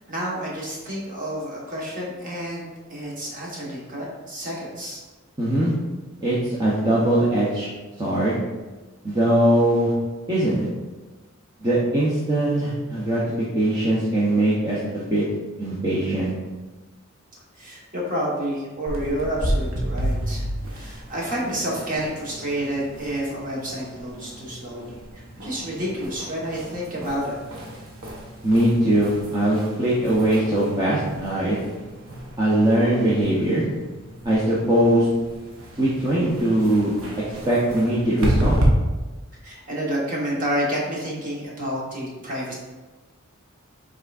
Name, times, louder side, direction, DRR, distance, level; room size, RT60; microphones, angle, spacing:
voice 1, 0.1-5.0 17.6-27.4 39.4-42.5, equal, 35° right, -5 dB, 1.2 m, -29 dB
voice 2, 5.4-5.7 6.2-7.7 8.0-8.4 9.0-9.9 10.3-10.7 11.6-13.2 13.5-15.2 15.6-16.3 28.4-31.6 32.4-33.6 34.2-35.1 35.8-36.9 37.5-38.6, right 1 dB, 20° right, -8 dB, 0.6 m, -21 dB
sound 1, 18.9-38.7, equal, 70° right, 0.8 m, -32 dB
5.6 x 3.7 x 2.4 m, 1.2 s
head